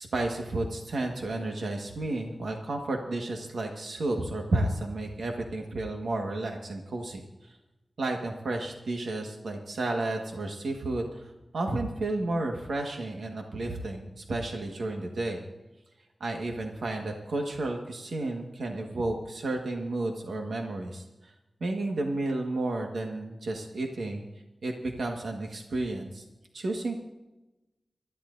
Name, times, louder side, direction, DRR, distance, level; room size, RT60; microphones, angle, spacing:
voice 1, 0.0-7.6 8.0-15.4 16.2-21.3 21.6-24.2 24.6-26.2 26.5-26.9, right 2 dB, 90° right, 1 dB, 1.6 m, -32 dB
26.0 x 13.5 x 2.7 m, 1.0 s
wide cardioid pair, 70°, 0 cm